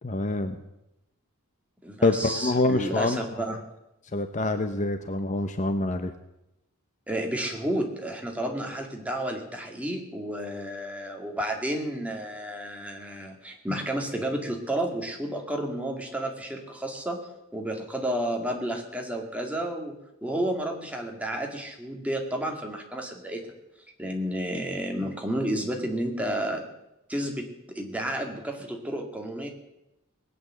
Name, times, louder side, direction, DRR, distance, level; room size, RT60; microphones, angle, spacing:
voice 1, 0.0-0.6 2.0-3.4 4.1-6.1, left 2 dB, 35° left, 8 dB, 0.8 m, -26 dB
voice 2, 1.8-3.6 7.1-17.2 17.5-20.0 20.2-23.5 24.0-26.6 27.1-29.5, right 1 dB, 5° right, 1 dB, 2.1 m, -31 dB
19.5 x 8.8 x 7.5 m, 0.90 s
head